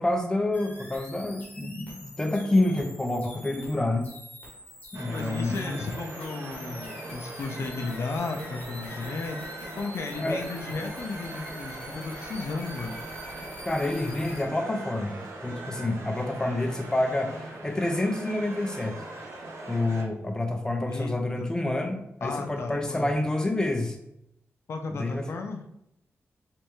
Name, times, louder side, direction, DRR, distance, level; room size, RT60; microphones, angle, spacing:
voice 1, 0.0-4.1 4.9-5.8 10.2-10.4 13.7-15.1 15.4-19.0 19.7-24.0 25.0-25.3, left 2 dB, 15° left, 4 dB, 0.5 m, -28 dB
sound 1, 0.5-14.4, left 1 dB, 30° left, 1.1 m, -46 dB
sound 2, 4.9-20.1, right 2 dB, 70° right, 0.7 m, -40 dB
voice 2, 5.1-9.4 9.8-13.0 20.8-21.5 22.2-23.1 24.7-25.6, left 3 dB, 65° left, 4 dB, 0.5 m, -34 dB
3.4 x 3.1 x 3.1 m, 0.81 s
wide cardioid pair, 110°, 5 cm